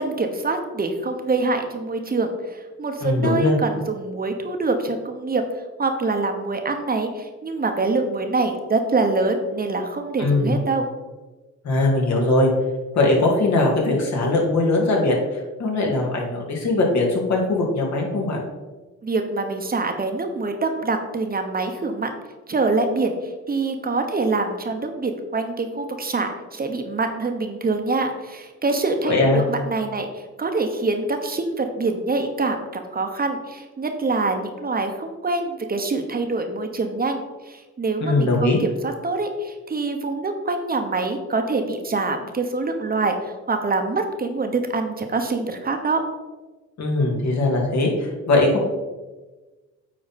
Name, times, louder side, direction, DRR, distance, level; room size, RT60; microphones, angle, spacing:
voice 1, 0.0-5.4 5.8-10.9 19.0-22.1 22.5-23.1 23.5-46.0, right 3 dB, 30° right, 5 dB, 1.0 m, -25 dB
voice 2, 3.0-3.6 10.2-10.6 11.6-12.5 12.9-18.4 29.1-29.4 38.0-38.6 46.8-48.6, left 2 dB, 65° left, -1 dB, 2.1 m, -20 dB
8.8 x 4.2 x 4.2 m, 1.2 s
cardioid pair, 90°, 30 cm